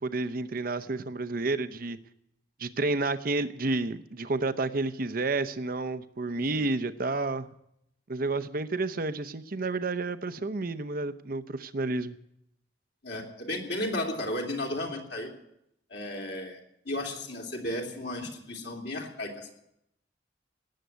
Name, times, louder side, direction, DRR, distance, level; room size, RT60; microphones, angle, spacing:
voice 1, 0.0-2.0 2.6-7.5 8.1-12.2, right 3 dB, 55° right, 13 dB, 0.8 m, -30 dB
voice 2, 6.4-6.7 13.0-15.3 15.9-16.6 16.8-19.5, left 1 dB, 65° left, 0 dB, 3.2 m, -34 dB
18.0 x 7.6 x 9.3 m, 0.78 s
head